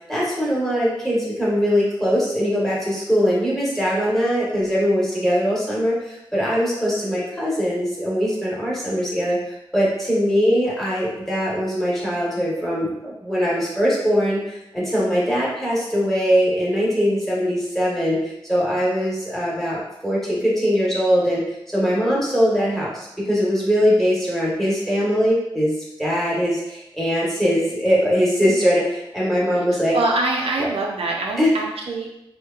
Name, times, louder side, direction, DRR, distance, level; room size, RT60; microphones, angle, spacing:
voice 1, 0.1-9.4 9.7-21.4 21.7-25.7 26.0-30.0 31.4-31.5, equal, 5° left, -6 dB, 1.0 m, -21 dB
voice 2, 29.7-32.2, right 2 dB, 85° right, -1 dB, 0.4 m, -24 dB
2.8 x 2.1 x 2.3 m, 0.87 s
wide cardioid pair, 65°, 10 cm